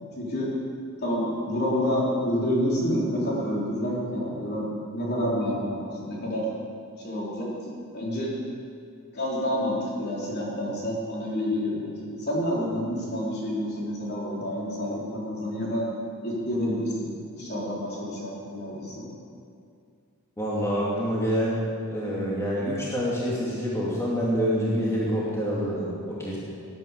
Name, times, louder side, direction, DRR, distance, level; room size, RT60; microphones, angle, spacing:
voice 1, 0.1-0.5 1.0-6.5 7.0-7.5 7.9-8.3 9.1-15.9 16.2-19.1, equal, 50° left, -5 dB, 4.0 m, -28 dB
voice 2, 20.4-21.6 21.9-26.4, equal, 15° left, -7 dB, 2.4 m, -26 dB
17.5 x 9.6 x 6.8 m, 2.4 s
head